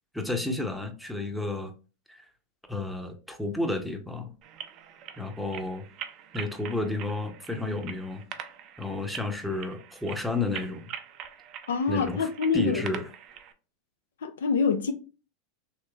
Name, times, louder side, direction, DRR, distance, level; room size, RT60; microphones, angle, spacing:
voice 1, 0.1-1.7 2.1-2.3 2.7-4.3 5.2-5.9 6.3-8.2 8.8-10.9 11.9-13.1, left 2 dB, ahead, 0.7 m, -31 dB
sound 1, 4.4-13.5, right 9 dB, 45° right, 0.5 m, -44 dB
voice 2, 11.7-12.8 14.2-14.9, left 5 dB, 80° left, 0.5 m, -25 dB
3.1 x 2.9 x 2.3 m
hypercardioid pair, 100°, 0 cm